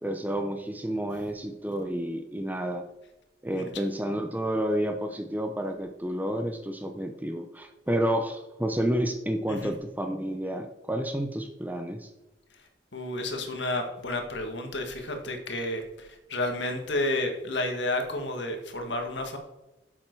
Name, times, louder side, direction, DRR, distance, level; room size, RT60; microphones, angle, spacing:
voice 1, 0.0-2.8 3.4-12.1, right 1 dB, 10° right, 6 dB, 0.7 m, -30 dB
voice 2, 12.9-19.4, left 1 dB, 75° left, 4 dB, 1.7 m, -31 dB
9.6 x 7.6 x 4.6 m, 0.96 s
head